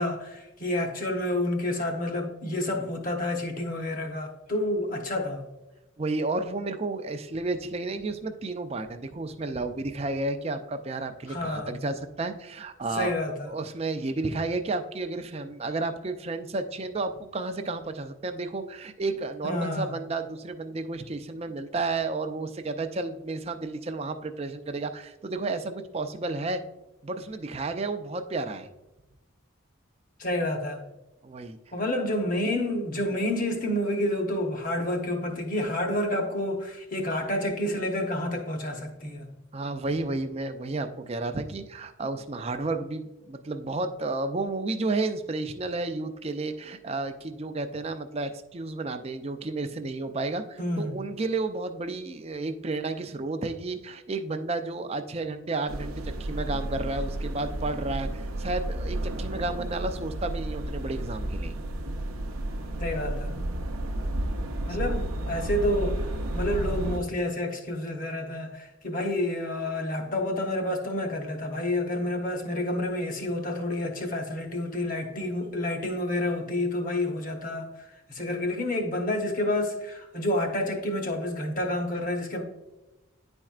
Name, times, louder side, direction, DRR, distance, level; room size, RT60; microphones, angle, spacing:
voice 1, 0.0-5.4 11.3-11.8 12.9-13.5 19.4-20.0 30.2-30.9 31.7-39.3 50.6-51.0 62.8-63.4 64.7-77.7 78.1-82.4, left 1 dB, 40° left, 3 dB, 1.0 m, -29 dB
voice 2, 6.0-13.2 13.4-26.6 27.0-28.7 31.2-31.6 39.5-61.5 64.7-65.0, right 3 dB, 30° right, 8 dB, 0.4 m, -32 dB
sound 1, 55.7-67.0, right 1 dB, 80° right, 0.6 m, -32 dB
10.0 x 4.4 x 2.4 m, 1.0 s
head